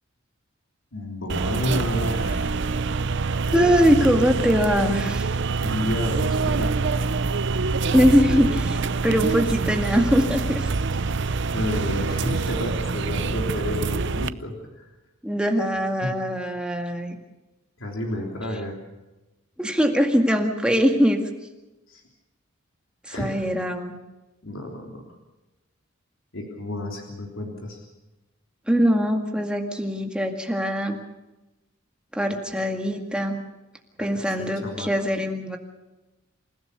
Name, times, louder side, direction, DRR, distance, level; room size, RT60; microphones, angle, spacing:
voice 1, 0.9-2.6 5.6-6.7 11.5-14.9 16.0-16.1 17.8-18.8 21.9-22.0 23.1-23.4 24.4-25.0 26.3-27.9 34.0-34.1 34.4-34.9, left 1 dB, 65° left, 1 dB, 3.4 m, -31 dB
sound 1, 1.3-14.3, right 4 dB, 55° right, 0.7 m, -25 dB
voice 2, 3.5-5.3 7.9-10.7 15.2-17.2 19.6-21.2 23.0-24.0 28.7-31.0 32.1-33.4 34.0-35.6, equal, 5° right, 3 dB, 2.0 m, -22 dB
28.5 x 16.0 x 6.8 m, 1.0 s
head